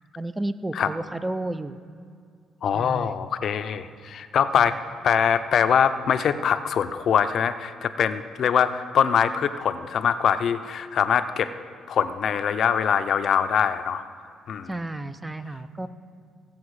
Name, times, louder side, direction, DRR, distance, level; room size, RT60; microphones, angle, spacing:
voice 1, 0.2-1.8 2.7-3.2 4.5-4.7 14.7-15.9, right 2 dB, 15° right, 12 dB, 0.5 m, -32 dB
voice 2, 2.6-4.8 5.0-11.5 11.9-14.0 14.5-14.7, left 7 dB, 65° left, 11 dB, 0.6 m, -23 dB
16.5 x 7.1 x 4.8 m, 2.2 s
cardioid pair, 90°, 0 cm